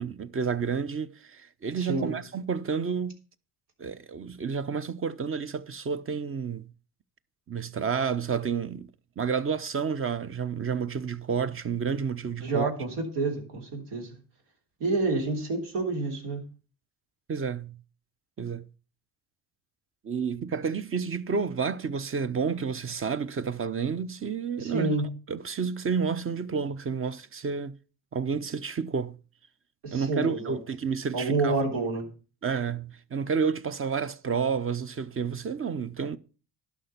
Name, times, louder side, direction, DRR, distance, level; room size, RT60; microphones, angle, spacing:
voice 1, 0.0-3.2 3.8-6.7 7.5-8.9 9.2-12.7 17.3-17.8 18.4-18.7 20.0-24.9 25.3-27.7 28.1-29.2 29.9-31.6 32.4-36.2, right 6 dB, 30° right, 0.8 m, -30 dB
voice 2, 1.8-2.2 12.4-14.2 14.8-16.4 24.6-25.1 29.8-30.6 31.1-32.1, right 3 dB, 80° right, 3.4 m, -28 dB
11.5 x 5.9 x 6.8 m
supercardioid pair, 80°, 41 cm